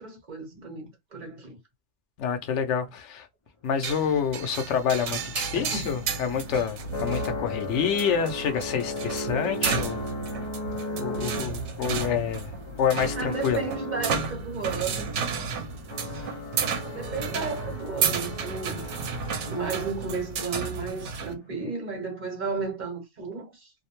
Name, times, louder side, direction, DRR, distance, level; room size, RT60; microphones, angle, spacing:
voice 1, 0.0-1.6 5.6-6.0 13.2-15.1 16.8-18.8 19.5-23.7, right 4 dB, 40° right, 1.1 m, -33 dB
voice 2, 2.2-3.3 3.6-10.0 11.0-13.6, left 7 dB, 85° left, 0.9 m, -28 dB
sound 1, 3.8-21.3, right 6 dB, 80° right, 0.9 m, -32 dB
sound 2, 4.3-20.3, left 1 dB, 40° left, 0.4 m, -37 dB
2.5 x 2.1 x 2.9 m
omnidirectional pair, 1.2 m